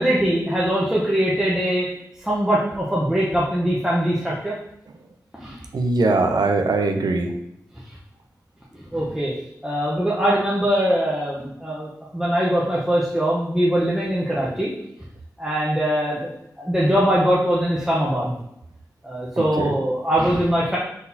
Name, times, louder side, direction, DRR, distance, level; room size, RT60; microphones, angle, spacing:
voice 1, 0.0-1.9 2.2-4.5 5.4-5.6 8.9-9.3 9.6-14.7 15.4-16.3 16.6-18.3 19.0-20.8, equal, 10° right, -6 dB, 0.9 m, -22 dB
voice 2, 5.7-7.4 19.4-19.7, right 3 dB, 80° right, 6 dB, 0.5 m, -21 dB
4.1 x 4.1 x 2.8 m, 0.79 s
cardioid pair, 50°, 7 cm